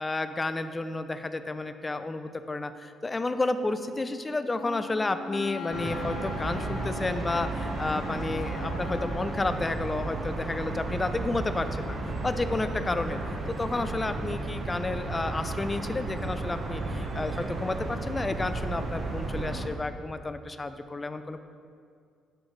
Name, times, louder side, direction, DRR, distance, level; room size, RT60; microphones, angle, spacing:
voice 1, 0.0-12.0 12.2-13.2 13.5-21.4, left 2 dB, 25° left, 10 dB, 0.5 m, -31 dB
Wind instrument woodwind instrument, 4.5-9.4, left 7 dB, 75° left, 0.7 m, -41 dB
sound 1, 5.7-19.7, right 2 dB, 50° right, 1.2 m, -33 dB
11.0 x 6.3 x 3.2 m, 2.2 s
supercardioid pair, 70°, 0 cm